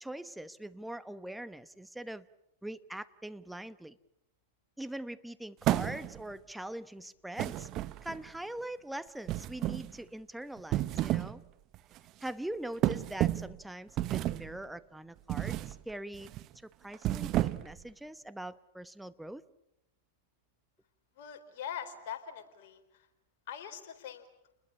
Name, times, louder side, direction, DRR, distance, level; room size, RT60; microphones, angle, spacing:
voice 1, 0.0-2.3 2.6-4.0 4.8-7.7 8.0-11.4 12.2-16.3 16.6-19.4, right 1 dB, 5° right, 14 dB, 1.1 m, -42 dB
sound 1, 5.6-6.3 7.4-8.3 9.3-9.9 10.6-11.4 11.7-12.0 12.8-13.6 14.0-14.5 15.3-15.7 16.1-16.4 16.9-17.8, right 14 dB, 40° right, 1.0 m, -31 dB
voice 2, 21.2-23.1 23.5-24.3, left 8 dB, 60° left, 6 dB, 4.2 m, -43 dB
29.5 x 21.0 x 8.6 m, 0.84 s
hypercardioid pair, 110°, 0 cm